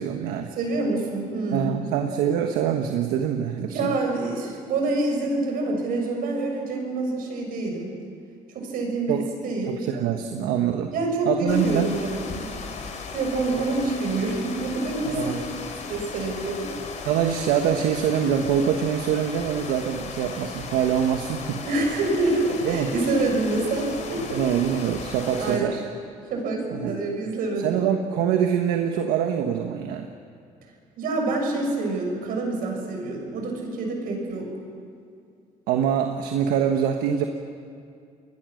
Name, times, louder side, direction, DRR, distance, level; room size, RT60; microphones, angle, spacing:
voice 1, 0.0-0.5 1.5-3.9 9.1-9.2 9.7-10.9 11.3-11.9 15.1-15.4 17.0-21.6 22.6-22.9 24.3-25.8 26.7-26.9 27.6-30.1 35.7-37.2, right 8 dB, 90° right, 5 dB, 1.4 m, -24 dB
voice 2, 0.6-1.8 3.6-7.9 8.5-9.8 10.9-12.6 13.1-15.5 15.9-16.7 21.7-24.4 25.4-25.7 26.3-27.8 31.0-34.5, right 2 dB, 75° right, 2 dB, 6.5 m, -26 dB
sound 1, 11.5-25.6, left 5 dB, 55° left, 3.8 m, -37 dB
29.0 x 21.5 x 6.5 m, 2.4 s
cardioid pair, 100°, 15 cm